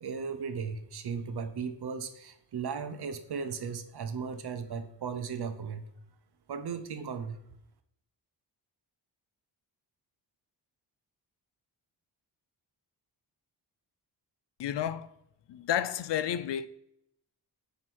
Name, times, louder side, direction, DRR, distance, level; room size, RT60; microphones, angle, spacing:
voice 1, 0.0-5.8 6.5-7.4, right 6 dB, 60° right, 0.8 m, -36 dB
voice 2, 14.6-15.1 15.5-16.7, left 10 dB, 70° left, 0.5 m, -31 dB
7.6 x 3.0 x 6.1 m
wide cardioid pair, 130°, 44 cm